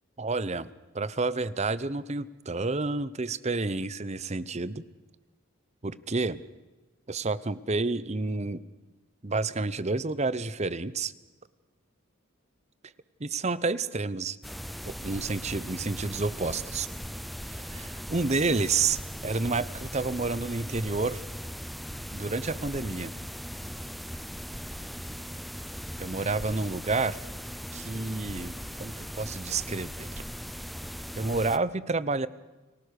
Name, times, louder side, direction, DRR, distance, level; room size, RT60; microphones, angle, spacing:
voice 1, 0.2-0.7 0.9-4.8 5.8-6.4 7.1-8.6 9.2-11.1 13.2-14.4 14.9-16.9 17.5-21.2 22.1-23.1 26.0-27.2 27.7-30.1 31.2-32.3, right 3 dB, 35° right, 17 dB, 0.8 m, -30 dB
sound 1, 14.4-31.6, equal, ahead, 0.7 m, -39 dB
30.0 x 18.5 x 6.6 m, 1.2 s
head